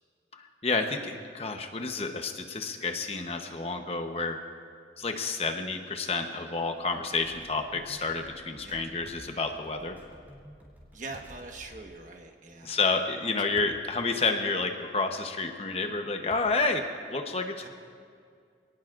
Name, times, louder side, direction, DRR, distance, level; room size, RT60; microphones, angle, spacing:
voice 1, 0.3-4.4 5.0-10.0 12.6-17.7, left 3 dB, 35° left, 5 dB, 0.9 m, -30 dB
sound 1, 6.8-11.9, equal, 10° right, 3.1 m, -52 dB
sound 2, 9.0-9.4 11.1-11.4 13.5-13.8 14.5-14.6 16.3-16.8, left 1 dB, 65° left, 1.7 m, -51 dB
voice 2, 10.9-12.8 13.4-13.6 17.6-17.7, right 3 dB, 45° right, 2 dB, 1.4 m, -43 dB
26.5 x 18.5 x 2.5 m, 2.2 s
head